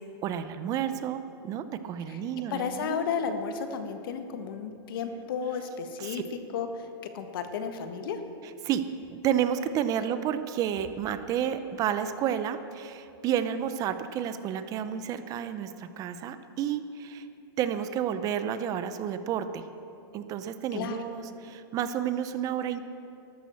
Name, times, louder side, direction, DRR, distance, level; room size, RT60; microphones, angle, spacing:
voice 1, 0.2-3.1 6.0-6.2 8.6-8.8 9.1-17.3 17.6-19.6 20.1-22.8, right 9 dB, 30° right, 10 dB, 0.7 m, -31 dB
voice 2, 2.5-6.2 6.5-6.9 7.1-8.2 20.7-21.0, left 6 dB, 65° left, 7 dB, 1.6 m, -33 dB
14.0 x 13.0 x 7.1 m, 2.7 s
supercardioid pair, 145°, 13 cm